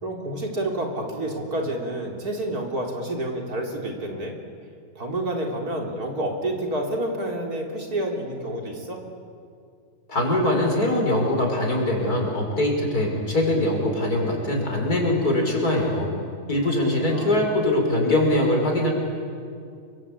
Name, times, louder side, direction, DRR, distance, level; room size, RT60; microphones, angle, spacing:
voice 1, 0.0-4.3 5.0-9.0 17.0-17.4, right 1 dB, 85° right, 1 dB, 4.2 m, -29 dB
voice 2, 10.1-16.1 16.5-18.9, left 1 dB, 90° left, 1 dB, 5.8 m, -22 dB
28.0 x 24.0 x 8.6 m, 2.3 s
omnidirectional pair, 1.6 m